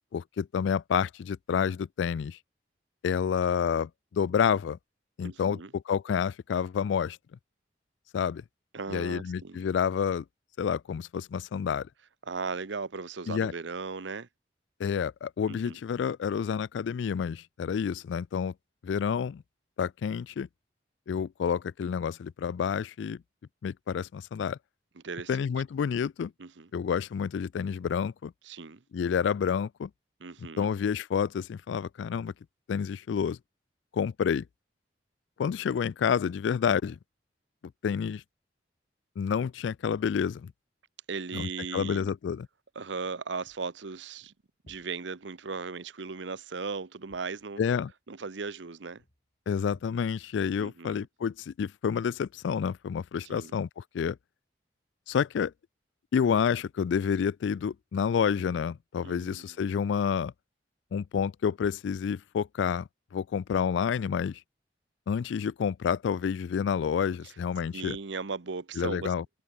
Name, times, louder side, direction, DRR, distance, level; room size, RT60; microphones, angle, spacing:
voice 1, 0.1-2.4 3.0-4.8 5.2-7.2 8.1-8.4 8.9-10.2 10.6-11.9 13.3-13.5 14.8-18.5 18.8-19.4 19.8-20.5 21.1-23.2 23.6-24.6 25.3-26.3 26.7-28.3 28.9-29.9 30.6-32.3 32.7-33.4 33.9-34.4 35.4-37.0 37.8-38.2 39.2-40.5 41.3-42.5 47.6-47.9 49.5-54.2 55.1-55.5 56.1-60.3 60.9-64.4 65.1-68.0 68.8-69.2, left 7 dB, 75° left, 0.3 m, -29 dB
voice 2, 5.2-5.7 8.7-9.7 12.3-14.3 15.5-15.8 25.0-25.4 26.4-26.7 28.4-28.8 30.2-30.7 41.1-42.1 42.7-44.3 44.7-47.6 48.1-49.0 50.6-51.1 53.2-53.5 59.0-59.6 67.2-67.3 67.7-69.1, right 4 dB, 75° right, 0.8 m, -37 dB
sound 1, 43.4-45.7 46.2-47.9 49.0-49.4 49.7-50.4, equal, 45° left, 5.2 m, -63 dB
head